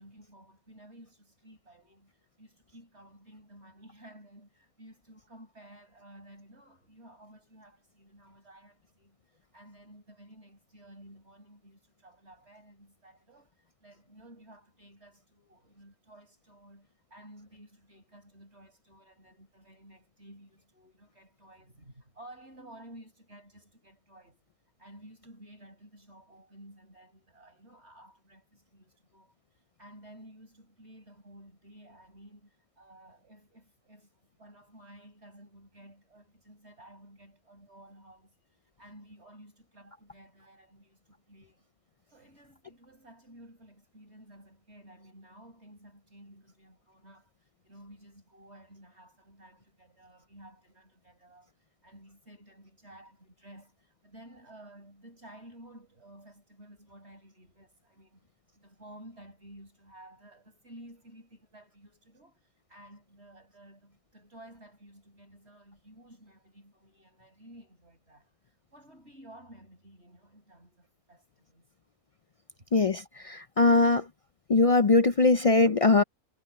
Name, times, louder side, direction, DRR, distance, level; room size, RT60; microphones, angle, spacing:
voice 1, 0.0-2.1 2.4-24.4 24.8-38.4 38.8-41.7 42.1-51.5 51.8-71.7, right 1 dB, 50° right, 8.3 m, -54 dB
voice 2, 72.7-74.0 74.5-76.0, left 3 dB, 65° left, 0.3 m, -21 dB
omnidirectional pair, 1.4 m